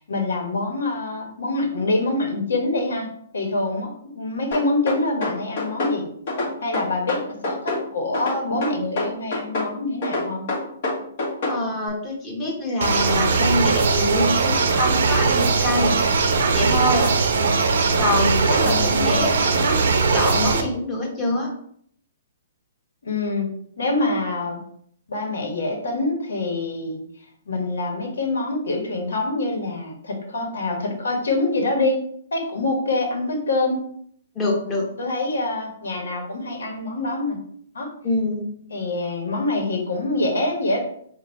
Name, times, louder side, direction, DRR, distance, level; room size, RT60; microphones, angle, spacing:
voice 1, 0.0-3.1 3.3-6.1 6.6-10.5 18.6-19.3 23.0-24.6 25.1-27.0 27.5-32.0 32.3-33.8 35.0-37.4 37.7-37.9 38.7-40.8, left 2 dB, 80° left, 2 dB, 1.4 m, -25 dB
sound 1, 4.5-6.0 6.3-7.8 8.1-9.7 10.0-11.6, left 2 dB, 55° left, 1.7 m, -26 dB
voice 2, 11.5-16.0 16.5-17.1 18.0-19.8 20.1-21.5 34.3-34.9 38.0-38.5, left 1 dB, 20° left, -2 dB, 1.4 m, -25 dB
sound 2, 12.8-20.6, right 4 dB, 70° right, 0.7 m, -20 dB
3.8 x 2.4 x 4.4 m, 0.65 s
hypercardioid pair, 140°, 0 cm